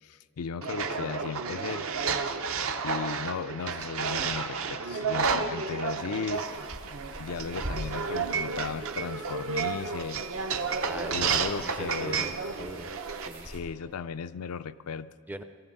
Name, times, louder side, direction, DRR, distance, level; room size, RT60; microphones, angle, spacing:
voice 1, 0.0-1.8 2.3-2.4 2.8-6.7 7.2-10.2 11.1-12.3 13.5-15.1, left 6 dB, 75° left, 12 dB, 0.4 m, -36 dB
sound 1, 0.6-13.3, right 5 dB, 65° right, 0.7 m, -31 dB
sound 2, 6.3-13.6, right 1 dB, 85° right, 2.9 m, -44 dB
voice 2, 10.8-12.9 13.3-13.5 15.3-15.4, right 1 dB, 10° right, 10 dB, 0.4 m, -41 dB
19.0 x 14.0 x 4.0 m, 2.4 s
head